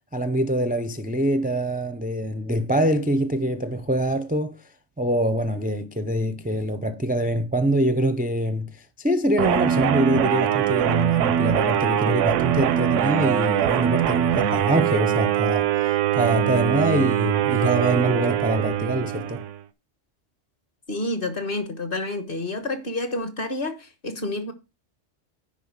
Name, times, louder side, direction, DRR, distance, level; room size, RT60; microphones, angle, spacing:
voice 1, 0.1-4.6 5.0-15.7 16.1-19.4, right 1 dB, 10° right, 0.4 m, -24 dB
sound 1, 9.4-19.6, right 10 dB, 80° right, 1.0 m, -22 dB
voice 2, 20.9-24.5, left 2 dB, 50° left, 1.5 m, -29 dB
10.0 x 3.9 x 6.5 m
omnidirectional pair, 1.2 m